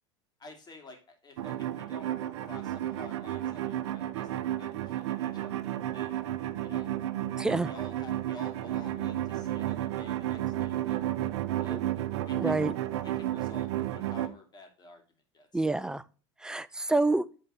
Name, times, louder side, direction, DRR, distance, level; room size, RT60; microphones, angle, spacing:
voice 1, 0.4-2.1 2.4-6.2 6.6-6.9 7.4-11.1 11.6-12.0 12.2-12.7 13.0-15.0 15.3-15.7, left 2 dB, 30° left, 2.7 m, -51 dB
sound 1, 1.4-14.3, right 13 dB, 75° right, 0.7 m, -32 dB
voice 2, 7.4-7.7 11.7-11.8 12.3-12.7 15.5-16.0 16.4-17.3, right 2 dB, 5° right, 0.4 m, -28 dB
9.2 x 4.0 x 4.2 m
hypercardioid pair, 85°, 15 cm